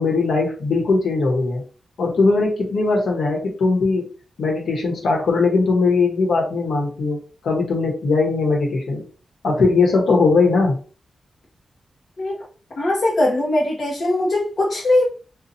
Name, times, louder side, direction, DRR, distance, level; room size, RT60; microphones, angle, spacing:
voice 1, 0.0-1.6 2.0-4.1 4.4-9.0 9.4-10.8, left 3 dB, 75° left, 1.2 m, -19 dB
voice 2, 12.8-15.0, left 1 dB, 60° left, 0.9 m, -20 dB
2.7 x 2.4 x 4.1 m
cardioid pair, 65°, 0 cm